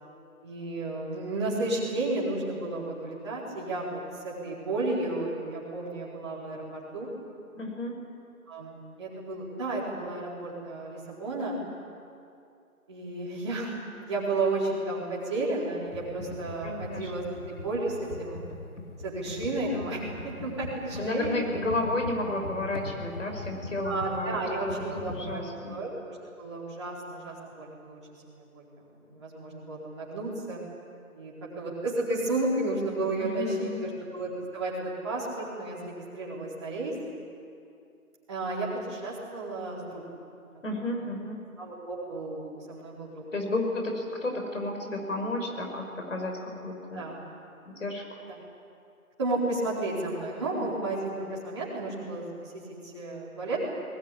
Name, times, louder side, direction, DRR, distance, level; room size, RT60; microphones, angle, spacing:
voice 1, 0.4-7.1 8.5-11.6 12.9-18.4 19.0-21.4 23.8-28.0 28.3-28.6 29.1-30.6 31.1-34.7 35.0-37.0 38.3-40.0 40.5-40.6 41.6-43.2 46.9-47.1 48.3-48.4 49.2-52.3 52.5-53.6, right 2 dB, 20° right, -7 dB, 4.5 m, -32 dB
voice 2, 7.5-7.9 16.6-17.3 21.0-24.8 25.1-25.8 33.2-33.9 40.6-41.4 43.3-47.0 47.6-48.2 50.6-50.7, left 2 dB, 55° left, 2 dB, 5.8 m, -32 dB
Computer keyboard, 15.9-25.4, left 2 dB, 85° left, 4.1 m, -40 dB
21.0 x 20.5 x 10.0 m, 2.5 s
figure-of-eight pair, 180°, 44 cm